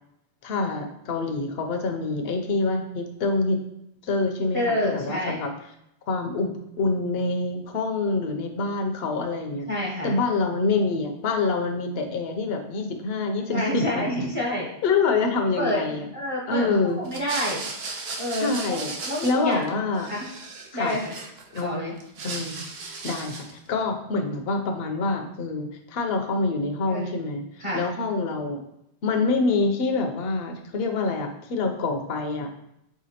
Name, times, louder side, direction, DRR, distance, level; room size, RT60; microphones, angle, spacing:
voice 1, 0.4-3.6 4.0-4.6 4.9-5.5 6.1-9.7 10.0-14.1 14.8-16.1 16.5-17.0 18.4-18.9 19.2-20.1 20.7-21.0 21.5-21.8 22.2-22.6 23.0-27.4 27.7-28.6 29.0-32.5, left 3 dB, 65° left, 5 dB, 0.8 m, -26 dB
voice 2, 4.5-5.4 9.7-10.2 13.5-14.7 15.6-17.7 18.2-19.8 20.1-20.3 20.7-21.1 21.6-22.0 26.9-27.3 27.6-27.8, left 1 dB, 35° right, -3 dB, 0.7 m, -28 dB
sound 1, 17.0-19.7 19.9-21.6 22.0-23.6, right 3 dB, 70° right, 0.9 m, -36 dB
5.0 x 3.3 x 2.8 m, 0.80 s
omnidirectional pair, 1.1 m